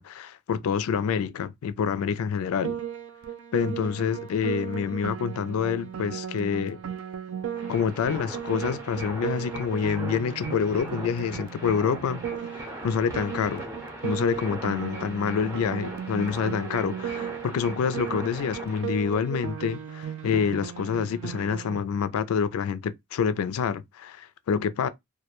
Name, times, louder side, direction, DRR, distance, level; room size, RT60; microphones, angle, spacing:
voice 1, 0.0-2.8 3.5-6.8 7.7-12.2 12.8-13.6 14.0-24.9, left 6 dB, 90° left, 0.3 m, -27 dB
Piano, 2.6-21.8, right 8 dB, 75° right, 0.4 m, -36 dB
sound 1, 7.5-18.8, right 1 dB, 15° right, 0.6 m, -40 dB
2.2 x 2.1 x 2.9 m
head